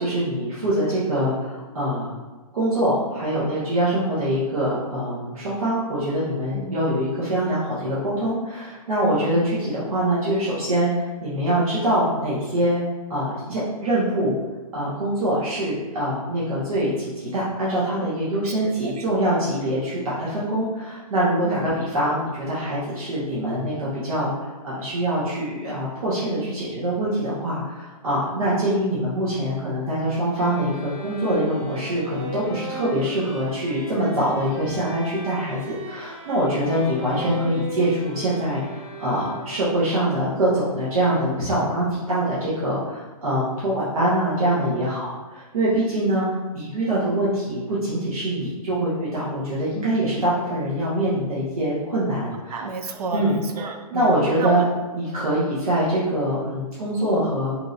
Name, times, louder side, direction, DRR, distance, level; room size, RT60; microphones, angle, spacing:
voice 1, 0.0-2.1 2.5-12.8 13.1-14.3 14.7-46.3 46.5-52.6 53.1-53.4 53.9-54.7 54.9-57.5, right 1 dB, 65° right, -9 dB, 1.0 m, -24 dB
voice 2, 6.5-6.9 9.2-9.5 18.4-18.9 21.4-21.7 52.5-54.6, right 4 dB, 85° right, 5 dB, 0.5 m, -31 dB
sound 1, 30.3-39.8, right 1 dB, 10° right, 1.3 m, -37 dB
3.0 x 2.7 x 2.6 m, 1.2 s
hypercardioid pair, 170°, 19 cm